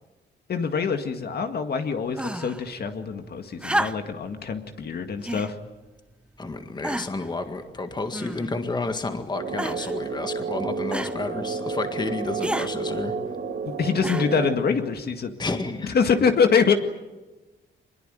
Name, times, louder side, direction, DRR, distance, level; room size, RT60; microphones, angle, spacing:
voice 1, 0.5-5.6 13.7-15.3 15.8-16.7, left 6 dB, 55° left, 6 dB, 2.0 m, -24 dB
sound 1, 2.1-2.6 3.6-4.3 5.2-5.5 6.3-6.4 6.8-7.3 8.1-8.7 9.6-10.0 10.9-11.2 12.4-12.7 14.0-14.5 15.5-15.6, right 1 dB, 5° right, 0.8 m, -30 dB
voice 2, 6.4-13.1 15.4-16.0, left 3 dB, 20° left, 7 dB, 1.8 m, -31 dB
sound 2, 9.3-14.5, right 5 dB, 60° right, 4.1 m, -31 dB
24.5 x 21.5 x 9.3 m, 1.2 s
wide cardioid pair, 145°, 20 cm